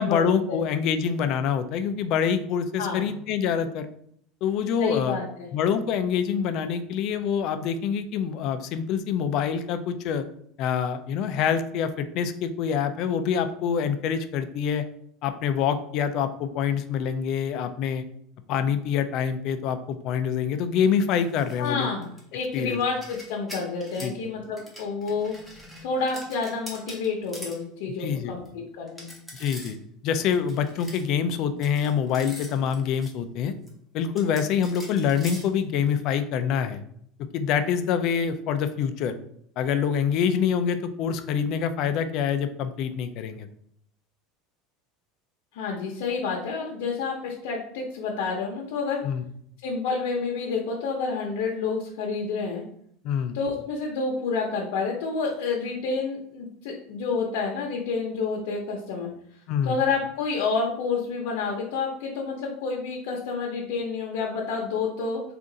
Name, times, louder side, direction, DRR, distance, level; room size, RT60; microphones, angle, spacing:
voice 1, 0.0-3.9 4.4-5.2 5.5-10.2 10.6-14.8 15.2-18.0 18.5-21.9 22.5-22.8 24.0-24.1 28.0-28.3 29.3-29.8 30.0-33.5 33.9-36.8 37.3-39.2 39.6-43.5 49.0-49.2 53.0-53.4 59.5-59.8, left 7 dB, 45° left, 10 dB, 0.3 m, -26 dB
voice 2, 2.8-3.1 4.8-5.5 21.6-22.1 22.3-25.3 25.8-29.2 45.5-49.0 49.6-52.6 53.3-59.1 59.6-65.2, left 4 dB, 75° left, -2 dB, 0.8 m, -29 dB
sound 1, 21.1-21.7 22.0-24.2 24.6-27.6 28.1-28.2 28.5-28.6 28.9-29.8 30.1-31.1 31.6-33.1 33.7-33.8 34.2-36.0, equal, 5° right, 0.8 m, -43 dB
3.7 x 2.5 x 3.8 m, 0.68 s
cardioid pair, 165°, 0 cm